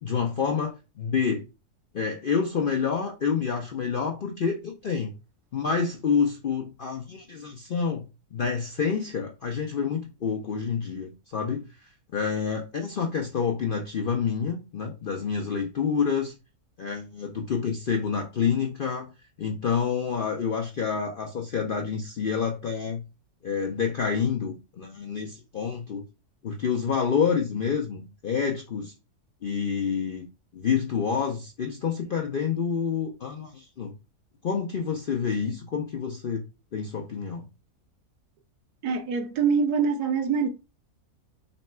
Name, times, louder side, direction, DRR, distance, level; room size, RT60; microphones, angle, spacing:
voice 1, 0.0-1.4 1.9-5.1 5.5-8.0 8.3-16.3 16.8-19.1 19.4-23.0 23.4-26.1 26.4-28.9 29.4-30.3 30.5-33.9 34.4-36.4 36.7-37.5, left 6 dB, 65° left, 0.5 m, -28 dB
voice 2, 38.8-40.5, right 5 dB, 90° right, 1.2 m, -24 dB
4.1 x 2.2 x 4.2 m
omnidirectional pair, 1.6 m